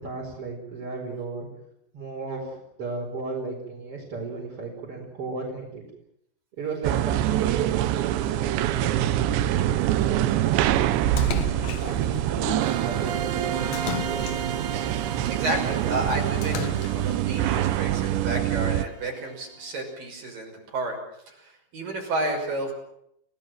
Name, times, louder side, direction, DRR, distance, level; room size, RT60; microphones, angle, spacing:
voice 1, 0.0-1.5 1.9-5.8 6.6-9.3 9.7-10.3 11.8-14.3, right 3 dB, 35° right, -4 dB, 5.5 m, -35 dB
sound 1, 6.8-18.9, right 12 dB, 85° right, 3.3 m, -25 dB
Splash splatter, 11.2-12.2 13.7-14.8 16.4-17.2, left 10 dB, 60° left, 1.9 m, -35 dB
sound 2, 12.6-19.3, right 7 dB, 70° right, 4.0 m, -34 dB
voice 2, 15.3-21.0 21.3-22.7, right 1 dB, 50° right, 3 dB, 7.4 m, -31 dB
30.0 x 18.0 x 7.7 m, 0.77 s
omnidirectional pair, 4.9 m